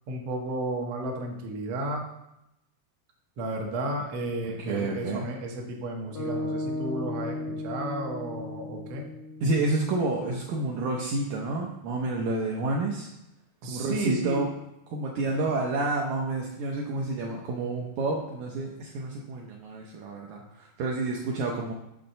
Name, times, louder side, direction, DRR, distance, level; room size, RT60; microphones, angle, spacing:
voice 1, 0.1-2.1 3.4-9.1 13.6-14.5 15.3-15.5, right 1 dB, 70° right, 0 dB, 1.5 m, -33 dB
voice 2, 4.6-5.3 9.4-13.1 13.6-14.5 14.9-21.7, right 2 dB, 85° right, -1 dB, 1.6 m, -29 dB
sound 1, 6.1-10.4, left 1 dB, 85° left, 1.0 m, -35 dB
6.1 x 4.3 x 6.5 m, 0.87 s
omnidirectional pair, 4.3 m